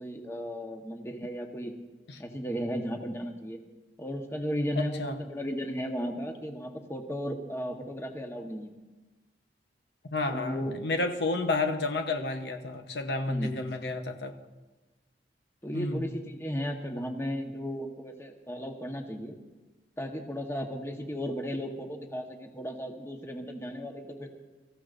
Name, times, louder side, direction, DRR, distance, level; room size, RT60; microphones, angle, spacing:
voice 1, 0.0-1.7 2.2-3.6 4.0-8.7 10.3-10.8 13.3-13.6 15.6-19.4 20.0-24.4, equal, 15° left, 3 dB, 1.2 m, -35 dB
voice 2, 4.8-5.2 10.1-14.3 15.7-16.1, left 3 dB, 70° left, 5 dB, 0.9 m, -31 dB
24.0 x 14.5 x 2.6 m, 1.2 s
head